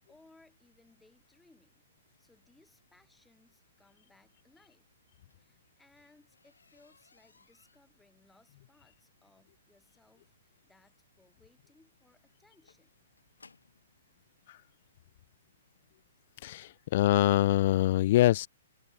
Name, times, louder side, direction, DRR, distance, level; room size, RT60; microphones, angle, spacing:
voice 1, 0.1-1.8 2.2-5.0 5.4-13.0, left 2 dB, 5° left, 7.7 m, -65 dB
sound 1, 5.0-13.9 14.8-14.9 15.5-15.7 16.0-16.1 16.4-16.5, left 4 dB, 80° left, 6.3 m, -65 dB
voice 2, 16.4-18.5, left 15 dB, 50° left, 0.3 m, -24 dB
figure-of-eight pair, 120°, 0 cm